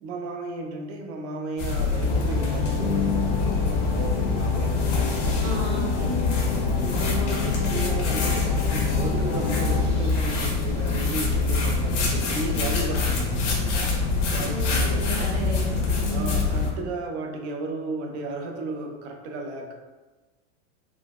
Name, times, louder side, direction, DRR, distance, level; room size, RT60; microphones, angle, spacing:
voice 1, 0.0-4.8 6.8-13.6 14.3-15.0 16.1-19.7, right 2 dB, 70° right, 3 dB, 0.6 m, -34 dB
sound 1, 1.6-16.7, left 4 dB, 80° left, 0.9 m, -25 dB
sound 2, 2.1-9.9, left 5 dB, 55° left, 0.4 m, -30 dB
voice 2, 5.4-6.2 14.4-16.4, right 2 dB, 25° right, -2 dB, 0.4 m, -33 dB
sound 3, 8.8-14.8, equal, 45° right, 0.9 m, -44 dB
3.8 x 2.1 x 2.3 m, 1.2 s
supercardioid pair, 155°, 35 cm